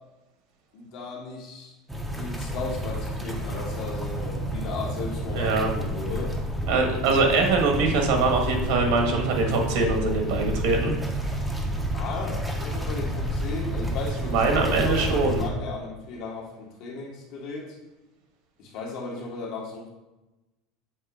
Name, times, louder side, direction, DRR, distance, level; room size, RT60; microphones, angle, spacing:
voice 1, 0.7-1.7 2.1-6.3 7.0-7.2 11.8-17.7 18.6-19.9, left 4 dB, 55° left, -2 dB, 1.6 m, -36 dB
sound 1, 1.9-15.5, equal, 5° right, 0.7 m, -30 dB
voice 2, 5.3-5.7 6.7-10.9 14.2-15.4, right 3 dB, 70° right, 2 dB, 1.4 m, -23 dB
7.6 x 2.9 x 4.9 m, 1.0 s
supercardioid pair, 150°, 0 cm